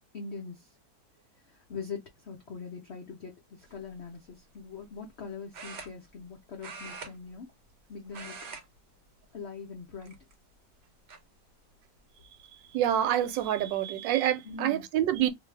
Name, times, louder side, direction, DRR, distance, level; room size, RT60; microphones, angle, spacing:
voice 1, 0.1-0.7 1.4-7.5 7.9-8.5 9.3-10.2 14.4-14.8, left 5 dB, 65° left, 0.6 m, -42 dB
sound 1, 3.6-3.9 5.5-6.3 6.6-7.8 8.1-8.6 8.9-9.2 10.0-10.5 11.1-11.2 12.6-12.7 13.0-13.4, right 4 dB, 50° right, 0.9 m, -44 dB
voice 2, 12.7-15.3, right 11 dB, 85° right, 1.3 m, -27 dB
2.7 x 2.5 x 3.2 m
omnidirectional pair, 2.0 m